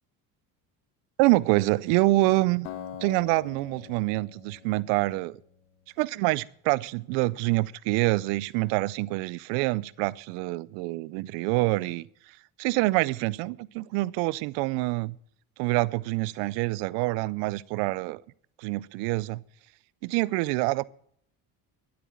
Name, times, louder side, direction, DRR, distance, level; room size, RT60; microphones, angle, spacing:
voice 1, 1.2-2.7 3.0-5.4 6.0-12.1 12.6-15.2 15.6-18.2 18.6-19.4 20.0-20.8, right 21 dB, 90° right, 0.6 m, -26 dB
Acoustic guitar, 2.6-5.8, left 9 dB, 85° left, 1.5 m, -44 dB
12.0 x 8.4 x 8.6 m
cardioid pair, 105°, 40 cm